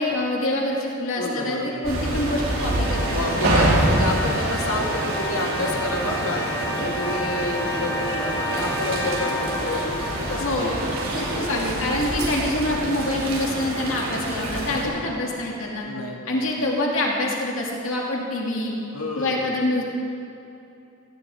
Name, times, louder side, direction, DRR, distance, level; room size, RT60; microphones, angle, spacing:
voice 1, 0.0-3.5 10.4-10.7 11.1-15.9 16.3-18.7 19.2-19.8, left 1 dB, 70° left, -2 dB, 2.5 m, -26 dB
voice 2, 1.2-2.0 3.1-6.4 6.7-11.7 12.1-12.3 14.7-14.9 15.8-16.2 18.9-19.4, left 2 dB, 85° left, 0 dB, 2.1 m, -30 dB
sound 1, 1.8-12.9, equal, 15° left, 2.2 m, -32 dB
sound 2, 1.8-14.9, right 1 dB, 70° right, 3.6 m, -26 dB
18.0 x 17.0 x 3.6 m, 2.8 s
head